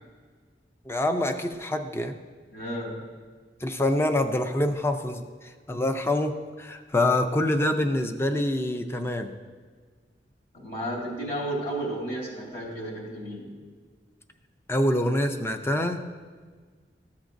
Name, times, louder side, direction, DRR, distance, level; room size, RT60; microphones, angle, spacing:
voice 1, 0.9-2.1 3.6-5.2 5.7-6.3 6.6-9.3 14.7-16.0, left 1 dB, 15° left, 6 dB, 0.4 m, -25 dB
voice 2, 2.5-3.1 10.5-13.5, right 1 dB, 50° left, -4 dB, 2.8 m, -33 dB
14.0 x 7.1 x 2.6 m, 1.5 s
head